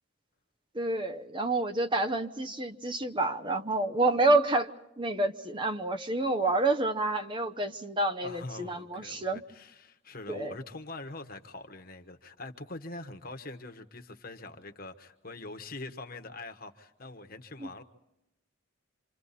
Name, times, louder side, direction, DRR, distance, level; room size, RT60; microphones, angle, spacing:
voice 1, 0.7-4.7 5.0-9.4 10.3-10.5, right 2 dB, 25° right, 0.7 m, -28 dB
voice 2, 8.2-17.8, left 2 dB, 45° left, 1.3 m, -43 dB
27.0 x 26.5 x 4.2 m
head